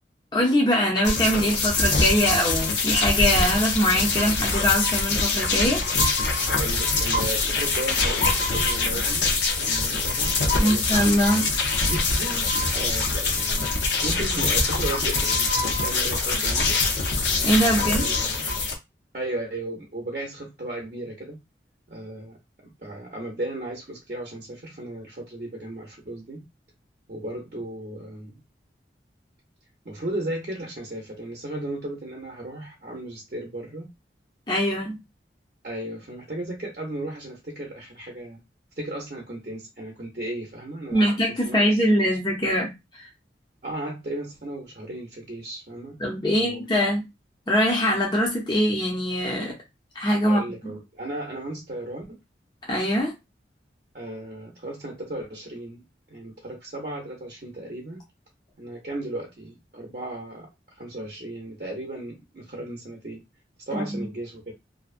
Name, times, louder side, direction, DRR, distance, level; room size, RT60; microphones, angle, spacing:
voice 1, 0.3-5.8 10.6-11.4 17.4-18.0 34.5-35.0 40.9-42.7 43.0-43.1 46.0-47.1 47.5-49.5 49.9-50.4 52.7-53.1 63.7-64.1, equal, 25° left, 0.6 m, -22 dB
sound 1, 1.0-18.7, left 3 dB, 85° left, 0.6 m, -24 dB
voice 2, 6.3-9.3 9.6-11.5 11.8-13.7 14.0-16.7 17.7-18.4 19.1-21.4 21.9-22.4 22.8-26.4 27.1-28.4 29.8-33.9 35.6-38.4 38.8-41.8 43.6-46.0 46.2-46.6 50.2-52.2 53.9-58.0 58.6-63.2 63.6-64.5, right 1 dB, 50° right, 0.7 m, -35 dB
2.6 x 2.2 x 2.4 m
head